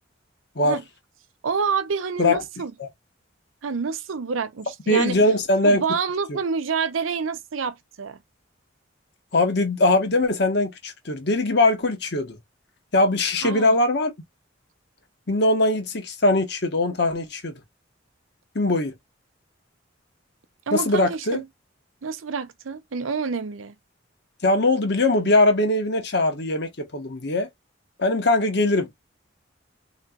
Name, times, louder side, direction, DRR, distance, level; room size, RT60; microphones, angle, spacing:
voice 1, 1.4-2.7 3.6-5.2 5.6-8.2 13.4-13.7 20.7-21.4 22.0-23.7, right 5 dB, 90° right, 0.6 m, -28 dB
voice 2, 4.9-5.8 9.3-12.4 12.9-14.1 15.3-17.6 18.5-18.9 20.7-21.4 24.4-27.5 28.0-28.9, left 2 dB, 55° left, 1.1 m, -21 dB
4.0 x 3.1 x 2.3 m
head